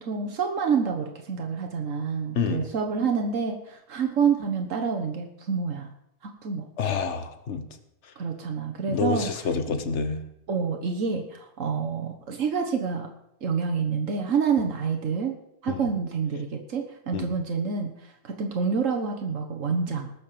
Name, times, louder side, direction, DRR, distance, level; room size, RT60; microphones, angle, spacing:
voice 1, 0.0-5.9 6.2-6.7 8.2-9.3 10.5-13.1 13.4-15.3 15.6-20.1, right 6 dB, 90° right, 3 dB, 1.7 m, -28 dB
voice 2, 6.8-7.6 8.9-10.2 15.7-15.9 17.1-17.3, left 5 dB, 65° left, 9 dB, 1.5 m, -27 dB
19.5 x 6.5 x 6.8 m, 0.79 s
omnidirectional pair, 1.3 m